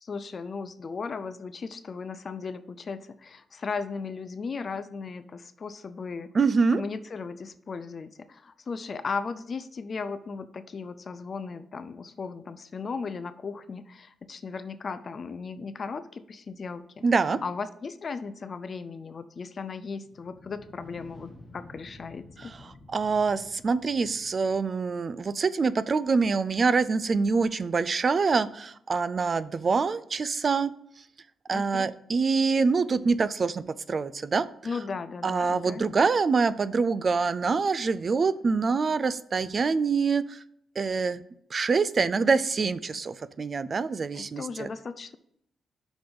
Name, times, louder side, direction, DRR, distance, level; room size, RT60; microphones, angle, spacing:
voice 1, 0.0-6.3 6.7-22.5 31.5-31.8 34.6-35.9 44.1-45.2, left 5 dB, 40° left, 12 dB, 0.4 m, -36 dB
voice 2, 6.3-6.8 17.0-17.4 22.4-30.7 31.5-34.5 35.2-40.4 40.8-41.2 41.5-44.7, right 4 dB, 35° right, 15 dB, 0.3 m, -25 dB
sound 1, 20.0-24.9, left 2 dB, 20° left, 1.5 m, -51 dB
6.0 x 5.2 x 5.1 m, 0.72 s
cardioid pair, 130°, 0 cm